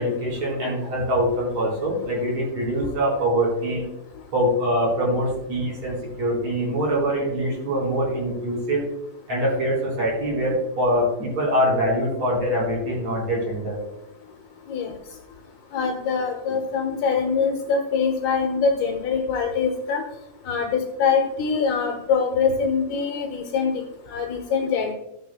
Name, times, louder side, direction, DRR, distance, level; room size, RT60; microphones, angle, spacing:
voice 1, 0.0-3.8 4.3-8.8 9.3-13.8, equal, 40° right, -2 dB, 4.9 m, -24 dB
voice 2, 15.7-20.0 20.5-23.8 24.1-24.9, left 5 dB, 75° left, 3 dB, 3.1 m, -23 dB
15.0 x 9.9 x 2.2 m, 0.88 s
omnidirectional pair, 4.9 m